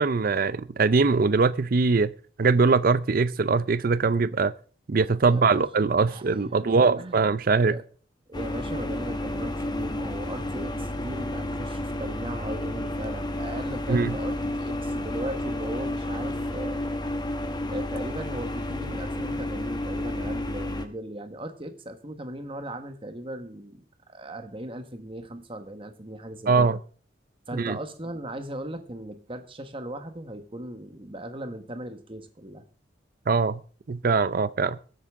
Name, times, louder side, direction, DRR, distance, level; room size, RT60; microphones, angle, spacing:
voice 1, 0.0-2.1 2.4-4.5 4.9-7.8 13.9-14.1 26.5-26.8 27.5-27.8 33.3-33.6 33.9-34.8, right 4 dB, 50° right, 16 dB, 0.5 m, -22 dB
voice 2, 5.2-5.6 6.1-7.2 7.6-7.8 8.3-16.9 17.7-26.8 27.5-32.6, right 1 dB, 30° right, 8 dB, 1.3 m, -38 dB
sound 1, 8.3-20.9, left 1 dB, 25° left, 1.0 m, -31 dB
21.0 x 8.2 x 3.6 m, 0.41 s
head